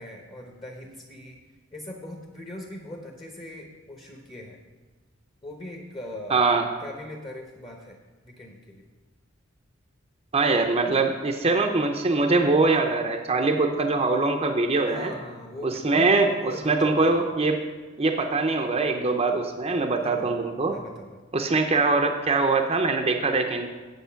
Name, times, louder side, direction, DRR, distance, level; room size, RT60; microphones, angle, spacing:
voice 1, 0.0-1.4 1.7-4.6 5.4-6.5 6.8-8.0 8.2-8.9 14.8-16.1 16.4-17.2 20.0-20.3 20.7-21.2, left 1 dB, 25° left, 1 dB, 0.9 m, -40 dB
voice 2, 6.3-6.7 10.3-15.1 15.6-17.6 18.0-20.8 21.3-23.7, right 3 dB, 30° right, 4 dB, 0.5 m, -23 dB
8.1 x 7.8 x 5.7 m, 1.3 s
head